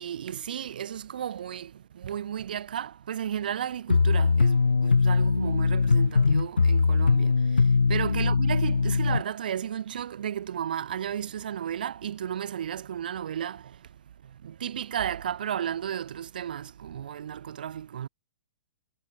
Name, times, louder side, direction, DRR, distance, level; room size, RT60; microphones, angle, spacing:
voice 1, 0.0-13.9 14.2-18.1, right 9 dB, 60° right, 7.8 m, -34 dB
sound 1, 3.9-9.2, left 4 dB, 80° left, 0.7 m, -21 dB
figure-of-eight pair, 115°, 6 cm